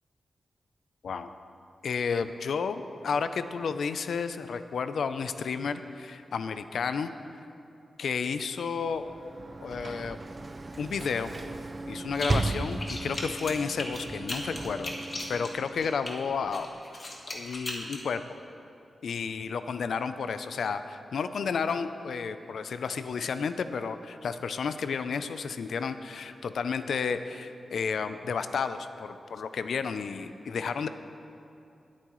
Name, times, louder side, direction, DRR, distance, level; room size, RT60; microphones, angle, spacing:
voice 1, 1.8-7.1 8.0-9.0 9.6-10.2 10.8-11.3 11.9-14.9 15.3-16.7 17.3-18.2 19.0-30.9, left 5 dB, 80° left, 11 dB, 0.5 m, -32 dB
Sliding door / Slam, 8.9-15.9, right 2 dB, 30° right, 0.4 m, -36 dB
sound 1, 12.1-12.5 12.8-16.1 16.5-18.0, left 2 dB, 40° left, 1.6 m, -37 dB
20.0 x 8.5 x 3.1 m, 2.7 s
wide cardioid pair, 120°, 0 cm